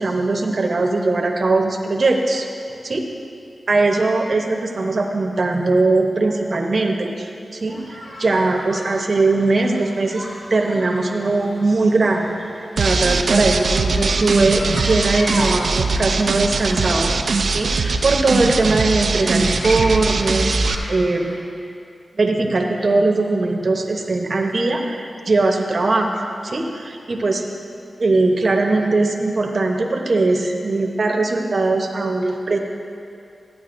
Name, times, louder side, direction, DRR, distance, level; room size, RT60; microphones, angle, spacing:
voice 1, 0.0-2.5 2.8-3.0 3.7-17.1 17.5-21.4 22.1-26.1 26.4-27.4 28.0-32.6, right 3 dB, 60° right, 2 dB, 0.9 m, -20 dB
sound 1, 7.7-21.4, equal, 80° left, 2.0 m, -36 dB
sound 2, 12.8-20.8, right 4 dB, 80° right, 0.4 m, -21 dB
13.5 x 9.2 x 2.6 m, 2.5 s
cardioid pair, 55°, 0 cm